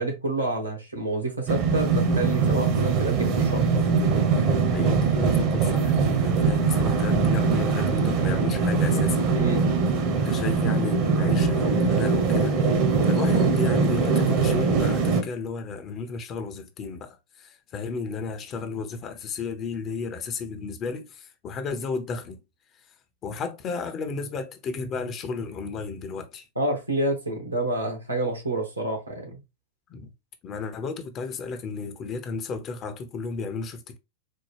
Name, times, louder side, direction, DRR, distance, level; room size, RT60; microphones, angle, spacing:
voice 1, 0.0-3.7 9.3-9.7 26.5-29.4, right 2 dB, 85° right, 1.2 m, -28 dB
sound 1, 1.5-15.2, right 4 dB, 40° right, 0.8 m, -22 dB
voice 2, 4.7-9.2 10.1-12.6 13.1-22.4 23.2-26.4 29.9-30.1 30.4-34.0, left 4 dB, 30° left, 0.7 m, -33 dB
4.3 x 2.2 x 3.2 m
figure-of-eight pair, 90°, 0 cm